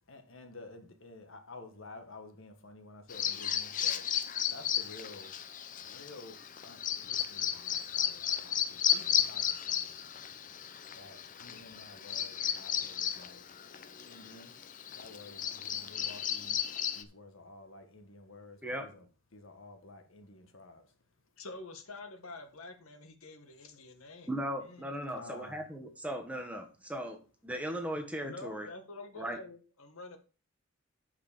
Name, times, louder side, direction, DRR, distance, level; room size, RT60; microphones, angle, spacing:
voice 1, 0.0-4.0 4.5-5.3 5.8-10.3 10.9-13.4 14.0-14.5 15.0-16.6 16.9-19.0 19.3-20.8 24.9-25.6, left 2 dB, 70° left, 1.4 m, -51 dB
Bird vocalization bird call bird song, 3.1-17.0, left 9 dB, 40° left, 0.6 m, -34 dB
voice 2, 21.4-24.3 24.6-25.1 28.2-30.2, left 3 dB, 90° left, 1.4 m, -47 dB
voice 3, 24.3-28.7 29.2-29.4, equal, 5° right, 1.1 m, -38 dB
5.8 x 5.5 x 6.7 m
head